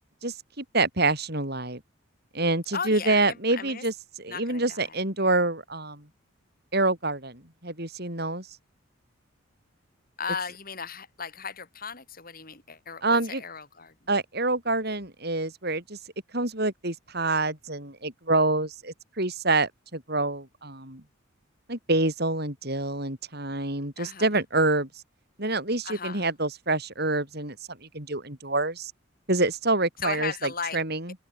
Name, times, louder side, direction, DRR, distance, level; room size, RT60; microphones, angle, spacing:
voice 1, 0.2-1.8 2.3-6.0 6.7-8.5 13.0-13.4 14.1-16.0 16.3-21.0 21.7-24.9 25.4-28.9 29.3-31.1, right 2 dB, 50° right, 7.0 m, -27 dB
voice 2, 2.7-3.8 4.3-5.0 10.2-13.9 24.0-24.3 25.8-26.3 30.0-30.8, left 6 dB, 45° left, 5.7 m, -36 dB
open air
head